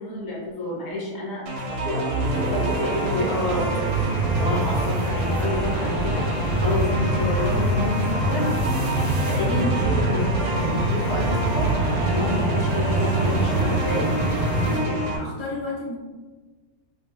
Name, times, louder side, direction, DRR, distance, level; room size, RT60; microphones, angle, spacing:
voice 1, 0.0-1.6 1.8-2.0 2.3-3.6 4.4-6.2 6.6-8.5 9.3-11.7 12.0-14.0 14.9-15.0, left 1 dB, 30° left, -5 dB, 0.4 m, -29 dB
sound 1, 1.5-15.2, right 1 dB, 65° right, 0.8 m, -28 dB
sound 2, 2.2-14.8, right 1 dB, 50° right, 0.5 m, -25 dB
voice 2, 14.7-16.0, left 3 dB, 55° left, -4 dB, 0.8 m, -33 dB
2.4 x 2.2 x 3.2 m, 1.3 s
omnidirectional pair, 1.5 m